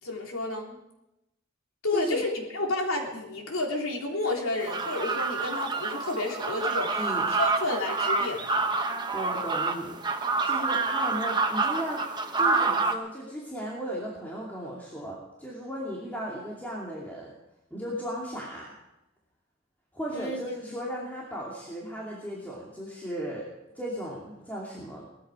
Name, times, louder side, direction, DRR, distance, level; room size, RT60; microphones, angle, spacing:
voice 1, 0.0-0.8 1.8-8.8 20.1-20.4, left 2 dB, 90° left, 0 dB, 3.5 m, -31 dB
voice 2, 1.9-2.2 6.9-7.3 9.1-10.0 10.4-12.0 12.4-17.3 17.7-18.8 19.9-23.5 23.7-25.1, equal, 10° left, -5 dB, 2.6 m, -36 dB
sound 1, 4.6-12.9, right 3 dB, 20° right, 1.0 m, -27 dB
19.0 x 13.5 x 4.9 m, 0.92 s
head